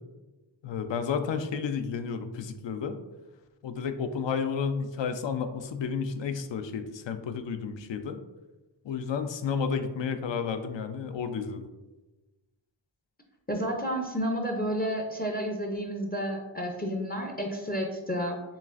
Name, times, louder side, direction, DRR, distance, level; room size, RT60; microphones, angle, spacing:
voice 1, 0.6-2.9 3.6-8.2 8.8-11.7, left 6 dB, 70° left, 9 dB, 0.5 m, -31 dB
voice 2, 13.5-18.4, equal, 20° left, 1 dB, 0.5 m, -31 dB
7.0 x 2.4 x 2.4 m, 1.1 s
wide cardioid pair, 85°, 46 cm